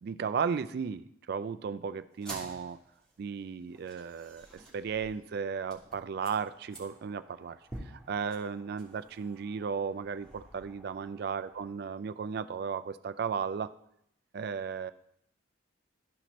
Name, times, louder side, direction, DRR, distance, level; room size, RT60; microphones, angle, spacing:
voice 1, 0.0-2.8 3.2-7.6 7.9-13.7 14.3-14.9, right 6 dB, 55° right, 13 dB, 0.3 m, -35 dB
sound 1, 2.1-11.7, right 1 dB, 5° left, 1.6 m, -50 dB
12.5 x 4.3 x 3.0 m, 0.75 s
head